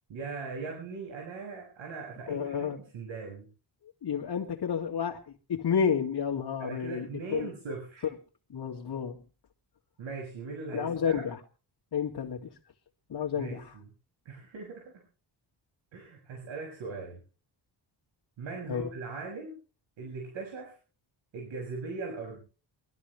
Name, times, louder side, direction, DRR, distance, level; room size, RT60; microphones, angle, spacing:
voice 1, 0.1-3.5 6.6-8.1 10.0-11.2 13.3-13.9 14.3-15.0 15.9-17.2 18.4-19.6 20.0-20.7 21.3-22.4, right 4 dB, 85° right, 6.8 m, -40 dB
voice 2, 2.3-2.8 4.0-5.2 5.5-7.5 8.5-9.2 10.7-11.4 11.9-12.5 13.1-13.8 18.7-18.9, left 7 dB, 55° left, 2.4 m, -30 dB
24.0 x 13.5 x 3.3 m
cardioid pair, 110°, 45 cm